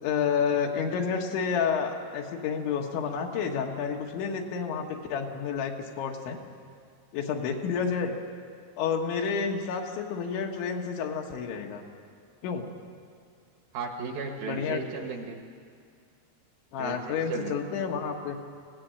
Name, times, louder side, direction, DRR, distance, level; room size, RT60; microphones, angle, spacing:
voice 1, 0.0-6.4 7.1-8.2 8.8-11.8 12.4-12.7 14.5-14.8 16.7-18.4, left 6 dB, 85° left, 2 dB, 3.9 m, -30 dB
voice 2, 13.7-15.4 16.8-17.6, right 4 dB, 65° right, 4 dB, 2.7 m, -35 dB
23.5 x 18.0 x 7.9 m, 2.3 s
omnidirectional pair, 5.2 m